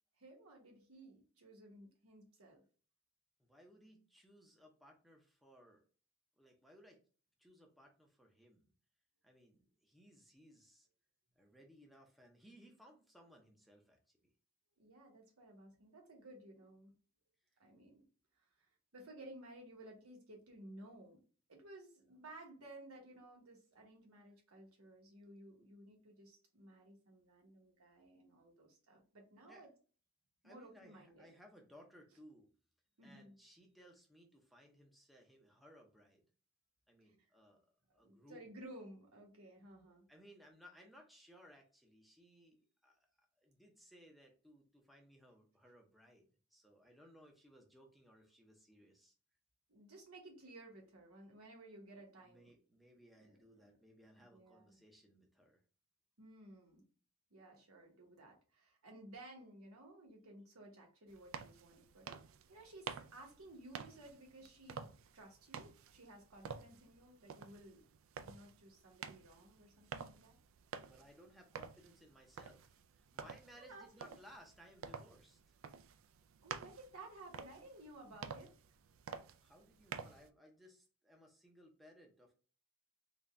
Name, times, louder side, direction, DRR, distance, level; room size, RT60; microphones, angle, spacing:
voice 1, 0.2-2.6 14.8-16.9 17.6-18.0 18.4-21.2 21.5-29.7 30.4-31.3 33.0-33.4 37.0-37.3 37.9-40.0 49.7-52.5 53.2-53.4 53.6-53.8 54.2-54.8 56.2-56.8 57.3-67.8 68.2-70.4 73.6-74.1 76.4-78.5, right 1 dB, 90° right, 1 dB, 1.2 m, -56 dB
voice 2, 3.4-5.8 6.4-7.0 7.4-8.7 9.2-10.9 11.4-14.3 29.5-29.7 30.4-32.5 33.0-36.2 36.9-37.6 37.9-38.4 40.1-43.0 43.4-49.1 52.2-55.6 70.8-75.6 79.2-82.3, equal, ahead, 1 dB, 0.6 m, -62 dB
sound 1, 61.1-80.3, right 6 dB, 65° right, 0.3 m, -51 dB
3.9 x 2.2 x 3.3 m, 0.38 s
head